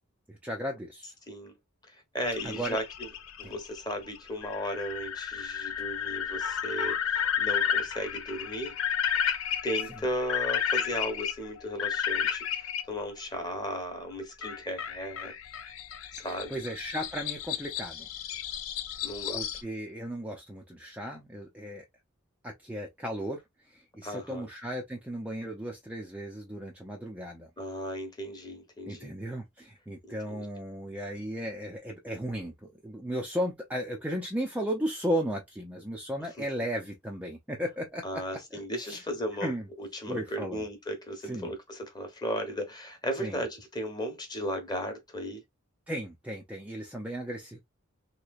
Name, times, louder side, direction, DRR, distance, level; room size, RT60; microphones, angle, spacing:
voice 1, 0.3-1.1 2.4-2.8 3.4-3.6 16.2-18.1 19.3-21.9 22.4-23.4 23.7-27.5 28.9-39.0 39.4-39.7 40.1-40.6 41.3-41.5 43.2-43.4 45.9-47.6, equal, 5° right, 0.5 m, -35 dB
voice 2, 1.9-3.1 3.4-7.0 7.4-8.8 9.6-15.3 16.1-16.6 19.0-19.4 24.0-24.5 27.6-29.1 30.1-30.5 36.4-36.5 38.0-39.5 39.8-45.4, equal, 20° left, 1.0 m, -35 dB
sound 1, 2.2-12.8 14.4-19.6, left 8 dB, 70° left, 0.5 m, -32 dB
3.2 x 3.1 x 2.4 m
head